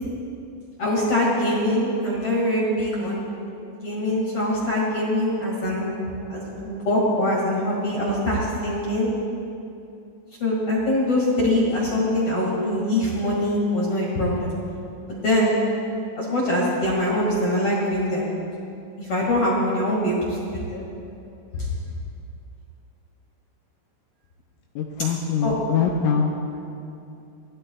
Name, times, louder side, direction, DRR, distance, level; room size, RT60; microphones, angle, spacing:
voice 1, 0.8-3.3 3.7-5.9 6.3-9.1 10.4-14.5 15.1-15.5 16.2-18.3 19.0-20.8 21.5-21.7 25.4-25.5, left 1 dB, 55° left, -4 dB, 1.6 m, -23 dB
voice 2, 24.8-26.6, left 6 dB, 80° left, 0 dB, 3.1 m, -24 dB
23.0 x 16.0 x 2.3 m, 2.6 s
omnidirectional pair, 6.0 m